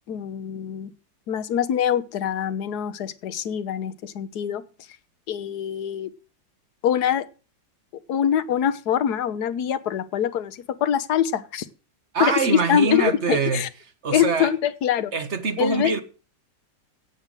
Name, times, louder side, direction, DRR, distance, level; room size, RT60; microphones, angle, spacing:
voice 1, 0.1-0.9 1.3-4.6 5.3-6.1 6.8-7.2 8.1-11.7 12.2-13.7 14.1-15.1 15.6-15.9, left 9 dB, 65° left, 1.5 m, -24 dB
voice 2, 12.1-13.6 14.0-14.5 15.1-16.0, right 4 dB, 40° right, 1.5 m, -24 dB
16.5 x 5.6 x 7.6 m
omnidirectional pair, 1.9 m